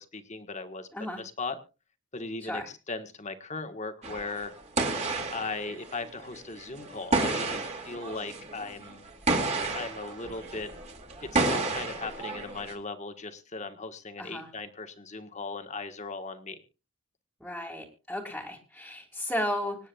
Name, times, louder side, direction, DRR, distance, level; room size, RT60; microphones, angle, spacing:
voice 1, 0.0-0.9 1.1-1.6 2.1-4.5 5.3-9.0 9.7-10.7 11.3-16.6, left 3 dB, 30° left, 8 dB, 1.5 m, -38 dB
sound 1, 4.0-12.7, right 3 dB, 30° right, 2.6 m, -31 dB
voice 2, 17.4-19.8, left 1 dB, ahead, -3 dB, 2.2 m, -34 dB
26.0 x 9.8 x 2.4 m, 0.30 s
head